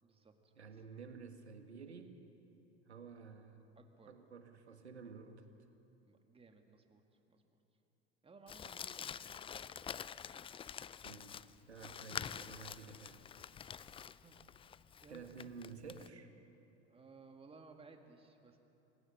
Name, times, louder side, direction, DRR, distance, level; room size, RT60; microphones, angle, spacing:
voice 1, 0.0-0.7 3.8-4.2 6.0-7.0 7.3-7.4 8.2-9.2 14.2-14.4 15.0-15.5 16.8-18.6, right 4 dB, 15° right, 5 dB, 2.1 m, -59 dB
voice 2, 0.6-2.2 2.9-3.6 4.0-5.5 11.0-11.4 11.7-13.2 15.1-16.3, right 5 dB, 85° right, 7 dB, 1.7 m, -51 dB
Crumpling crinkling, 8.5-16.1, left 8 dB, 15° left, 0.4 m, -47 dB
26.0 x 17.0 x 6.6 m, 3.0 s
figure-of-eight pair, 80°, 32 cm